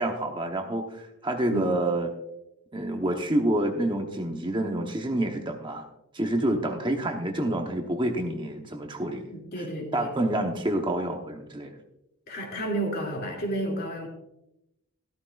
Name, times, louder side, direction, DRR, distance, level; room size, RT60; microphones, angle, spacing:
voice 1, 0.0-2.1 2.7-5.9 6.1-9.3 9.9-11.8, right 1 dB, 20° right, 3 dB, 1.0 m, -28 dB
voice 2, 9.3-10.1 12.3-14.1, right 1 dB, 50° left, 1 dB, 2.7 m, -31 dB
13.5 x 13.0 x 2.5 m, 0.85 s
head